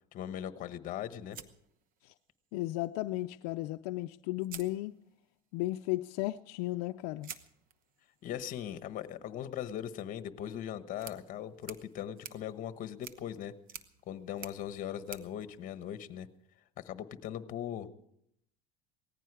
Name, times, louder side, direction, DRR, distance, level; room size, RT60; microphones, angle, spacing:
voice 1, 0.1-1.4 8.2-13.5 14.1-16.3 16.8-17.9, left 10 dB, 45° left, 1.2 m, -39 dB
sound 1, 1.3-2.5 3.8-3.9 4.4-5.4 7.2-16.4, right 9 dB, 50° right, 1.0 m, -52 dB
voice 2, 2.5-4.9 5.5-7.3, left 18 dB, 80° left, 0.5 m, -35 dB
18.5 x 15.0 x 4.8 m
supercardioid pair, 125°, 19 cm